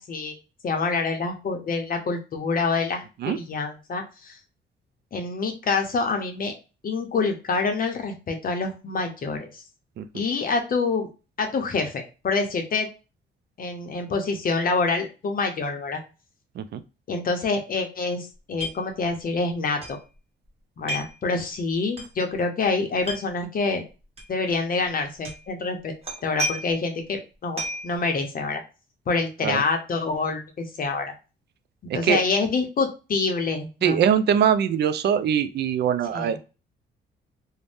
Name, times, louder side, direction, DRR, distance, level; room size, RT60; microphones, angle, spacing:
voice 1, 0.6-4.4 5.1-6.5 6.8-9.6 10.1-11.1 11.4-12.9 13.6-16.0 17.1-20.0 20.8-23.8 24.3-25.9 26.2-28.6 29.1-31.1 31.9-34.0 36.1-36.4, left 4 dB, 45° left, 4 dB, 0.6 m, -26 dB
sound 1, 18.6-18.8 19.1-19.2 19.8-20.0 20.9-21.2 22.0-22.1 23.0-23.2 24.2-24.3 25.2-25.5 26.0-26.8 27.6-27.9, equal, 30° right, 1.0 m, -31 dB
voice 2, 33.8-36.4, right 8 dB, 55° right, 12 dB, 0.4 m, -22 dB
2.6 x 2.1 x 3.4 m, 0.32 s
cardioid pair, 90°, 20 cm